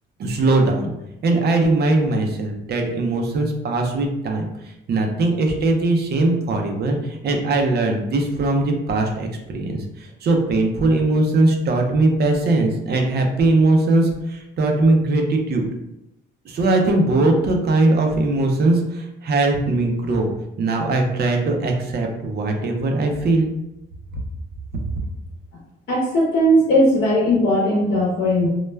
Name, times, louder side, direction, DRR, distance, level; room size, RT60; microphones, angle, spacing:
voice 1, 0.2-0.9 1.2-4.4 4.9-9.8 10.2-15.6 16.5-20.3 20.6-23.5 24.7-24.8, right 2 dB, 55° right, 2 dB, 0.6 m, -20 dB
voice 2, 25.9-28.5, equal, 60° left, -4 dB, 0.8 m, -18 dB
2.3 x 2.1 x 3.2 m, 0.87 s
cardioid pair, 90°, 20 cm